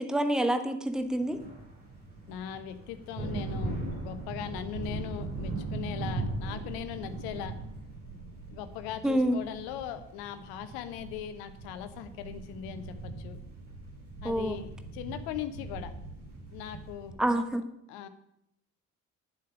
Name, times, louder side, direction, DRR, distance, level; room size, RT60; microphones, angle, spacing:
voice 1, 0.0-1.4 9.0-9.4 14.2-14.6 17.2-17.6, right 1 dB, ahead, 8 dB, 1.0 m, -27 dB
sound 1, 1.1-17.1, right 2 dB, 80° right, 3.8 m, -39 dB
voice 2, 2.3-3.8 4.0-7.5 8.5-13.4 14.2-15.9 16.5-17.2 17.9-18.1, left 10 dB, 60° left, 11 dB, 1.0 m, -39 dB
11.0 x 7.6 x 5.5 m, 0.79 s
figure-of-eight pair, 45°, 42 cm